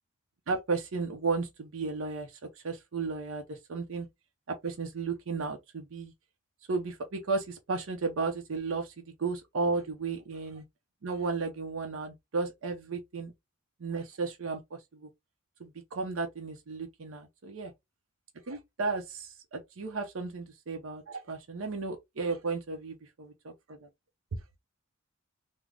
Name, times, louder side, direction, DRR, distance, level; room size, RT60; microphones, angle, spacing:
voice 1, 0.5-4.1 4.6-6.1 6.7-8.9 9.2-10.6 11.0-13.3 13.8-14.6 14.9-15.1 15.6-17.7 18.5-23.8, right 4 dB, 75° right, 0.6 m, -34 dB
3.3 x 2.0 x 3.6 m
head